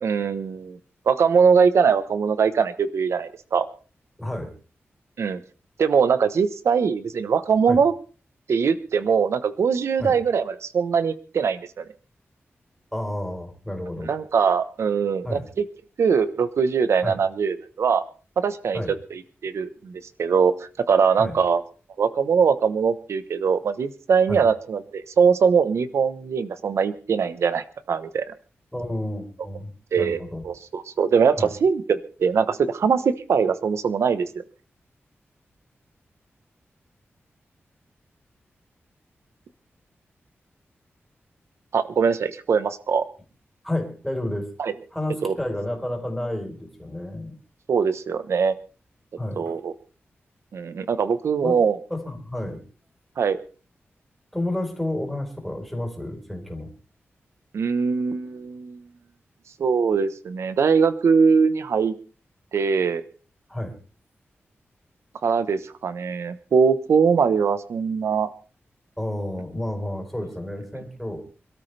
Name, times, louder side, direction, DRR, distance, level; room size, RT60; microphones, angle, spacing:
voice 1, 0.0-0.8 1.1-3.7 5.2-5.4 5.8-7.9 8.5-11.8 14.1-15.6 16.0-18.0 18.4-20.5 20.9-21.6 22.0-28.2 29.9-30.2 30.4-34.3 41.7-43.0 44.6-44.7 45.2-45.3 47.7-48.5 49.4-49.7 50.5-51.8 53.2-53.4 57.5-58.8 59.6-61.9 62.5-63.0 65.2-68.3, right 6 dB, 85° right, 12 dB, 1.1 m, -22 dB
voice 2, 4.2-4.5 7.7-7.8 10.0-10.1 12.9-14.1 15.2-15.5 17.0-17.2 18.7-18.9 21.2-21.4 24.3-24.5 28.7-30.4 31.4-31.5 43.6-44.5 44.9-47.3 49.2-49.6 51.4-51.6 51.9-52.6 54.3-56.7 63.5-63.7 69.0-71.2, left 1 dB, ahead, 2 dB, 4.2 m, -30 dB
26.5 x 13.0 x 3.4 m, 0.37 s
wide cardioid pair, 155°, 5 cm